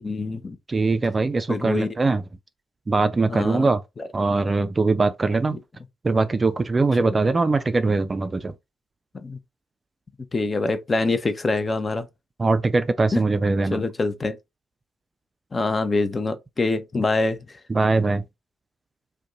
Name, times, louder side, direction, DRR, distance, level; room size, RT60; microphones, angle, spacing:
voice 1, 0.0-0.6 1.5-1.9 3.3-3.7 7.0-7.1 9.2-9.4 10.3-12.1 13.1-13.2 13.7-14.4 15.5-17.4, left 3 dB, 30° left, 0.6 m, -25 dB
voice 2, 0.7-2.2 2.9-3.8 4.1-5.6 6.0-8.5 12.4-13.8 17.7-18.2, right 3 dB, 30° right, 0.4 m, -21 dB
2.6 x 2.2 x 3.8 m
figure-of-eight pair, 45°, 0 cm